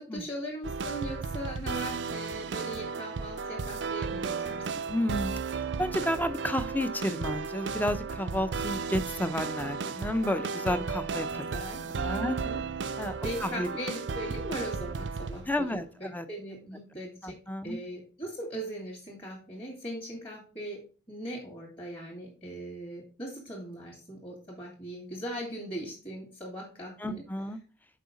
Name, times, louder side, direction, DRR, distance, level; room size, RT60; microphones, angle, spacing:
voice 1, 0.0-4.6 11.5-11.8 12.2-12.6 13.2-17.4 17.6-27.2, equal, 30° left, -2 dB, 2.6 m, -39 dB
sound 1, 0.6-15.6, right 5 dB, 70° right, 0.5 m, -34 dB
voice 2, 4.9-11.5 12.0-12.4 13.0-13.1 13.4-13.7 15.5-15.8 16.1-16.2 17.2-17.8 27.0-27.6, left 1 dB, 10° left, 11 dB, 0.6 m, -31 dB
6.7 x 4.8 x 5.1 m, 0.35 s
head